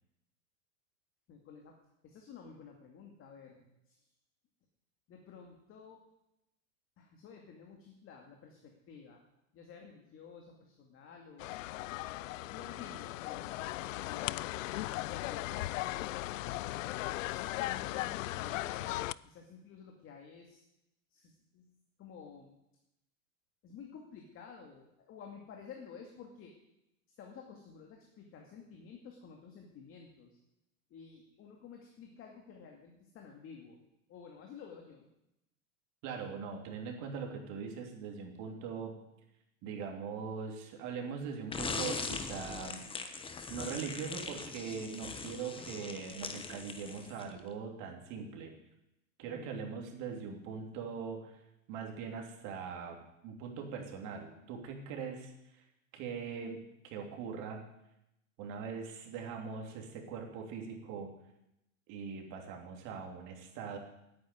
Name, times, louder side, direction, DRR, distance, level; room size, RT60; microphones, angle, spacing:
voice 1, 1.3-1.8 2.0-4.1 5.1-6.0 7.0-9.2 9.5-11.5 12.4-14.4 15.0-16.2 17.2-20.6 21.1-22.5 23.6-26.5 27.2-30.4 30.9-33.8 34.1-35.1 49.2-49.6, left 6 dB, 30° left, 2 dB, 2.3 m, -52 dB
sound 1, 11.4-19.1, left 17 dB, 70° left, 0.5 m, -37 dB
voice 2, 36.0-38.9 39.6-42.8 43.2-48.5 49.2-51.4 51.7-53.0 53.2-55.6 55.9-57.6 58.4-61.1 61.9-63.8, right 6 dB, 45° right, 2 dB, 3.1 m, -41 dB
sound 2, 41.5-47.4, left 4 dB, 15° left, 1.1 m, -41 dB
10.0 x 9.4 x 9.6 m, 0.86 s
supercardioid pair, 130°, 40 cm